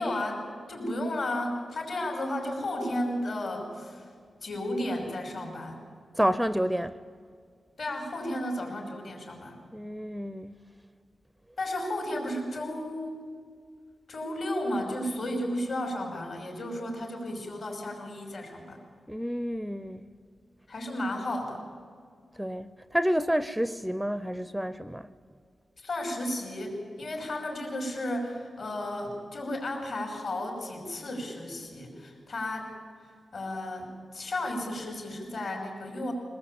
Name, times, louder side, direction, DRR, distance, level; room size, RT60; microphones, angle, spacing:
voice 1, 0.0-4.1 4.4-5.8 7.8-9.6 11.6-13.2 14.1-18.8 20.7-21.6 25.8-32.7 33.3-36.1, left 1 dB, 60° left, 5.6 m, -33 dB
voice 2, 6.2-6.9 9.7-10.6 19.1-20.1 22.4-25.1, equal, 5° right, 0.5 m, -29 dB
22.0 x 19.5 x 8.6 m
wide cardioid pair, 125°, 0 cm